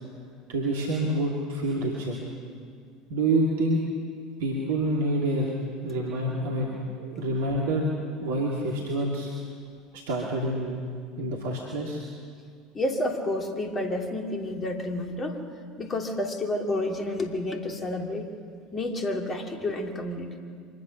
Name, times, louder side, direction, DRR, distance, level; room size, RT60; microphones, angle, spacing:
voice 1, 0.5-2.2 3.1-3.8 4.4-5.5 5.8-7.9 8.2-9.3 9.9-10.8 11.2-12.0, right 1 dB, 60° right, -2 dB, 2.6 m, -27 dB
voice 2, 12.7-15.4 15.8-18.3 18.7-20.4, left 1 dB, 25° left, 3 dB, 2.9 m, -30 dB
25.0 x 20.0 x 6.5 m, 2.2 s
figure-of-eight pair, 70°, 0 cm